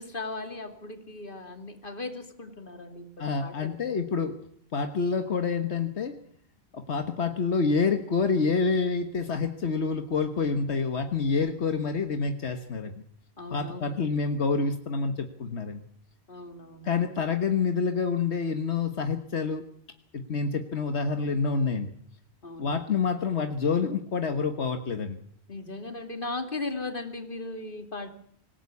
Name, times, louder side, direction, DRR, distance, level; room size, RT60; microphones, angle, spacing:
voice 1, 0.0-4.0 13.4-14.0 16.3-17.0 22.4-22.8 25.5-28.1, left 2 dB, 55° left, 6 dB, 2.8 m, -38 dB
voice 2, 3.2-4.4 4.7-6.2 6.7-13.0 13.5-15.8 16.8-19.6 20.1-21.9 22.6-25.2, left 5 dB, 85° left, 7 dB, 1.6 m, -27 dB
25.5 x 17.5 x 8.5 m, 0.64 s
omnidirectional pair, 1.1 m